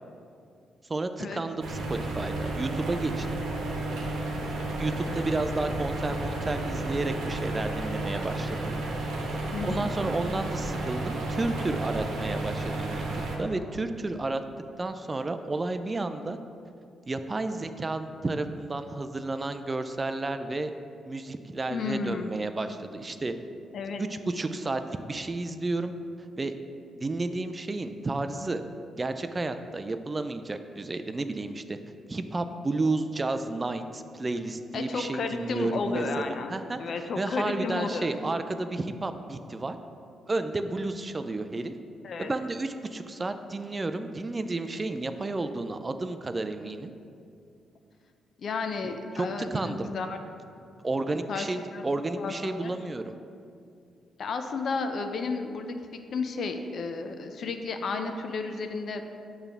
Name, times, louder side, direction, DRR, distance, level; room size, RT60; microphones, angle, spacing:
voice 1, 0.9-3.4 4.8-8.7 9.4-14.4 14.8-16.4 17.1-20.7 21.1-23.4 24.0-25.9 26.4-26.5 27.0-28.6 29.0-31.8 32.1-36.8 37.2-39.8 40.3-41.7 42.2-46.9 48.8-49.9 50.8-53.1, right 2 dB, 30° right, 9 dB, 0.4 m, -32 dB
sound 1, 1.6-13.4, right 2 dB, 80° right, 1.0 m, -32 dB
voice 2, 9.5-9.9 21.7-22.3 23.7-24.0 34.7-38.1 42.0-42.3 48.4-50.2 51.3-51.5 51.7-51.8 52.2-52.7 54.2-55.8 56.1-59.0, left 4 dB, 60° left, 6 dB, 0.6 m, -32 dB
6.8 x 3.3 x 5.8 m, 2.4 s
cardioid pair, 75°, 0 cm